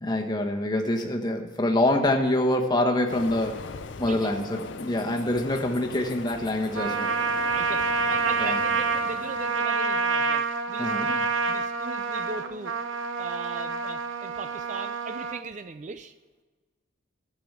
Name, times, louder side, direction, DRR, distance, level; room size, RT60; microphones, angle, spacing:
voice 1, 0.0-3.7 4.0-7.2 8.4-8.6 10.8-11.1, left 1 dB, 20° left, 2 dB, 1.2 m, -25 dB
Train, 3.1-9.8, left 4 dB, 60° left, 0.6 m, -40 dB
Trumpet, 6.7-15.4, right 4 dB, 70° right, 0.8 m, -27 dB
voice 2, 7.5-12.7 13.2-16.1, right 4 dB, 35° right, 10 dB, 0.4 m, -39 dB
12.5 x 7.0 x 7.3 m, 1.3 s
head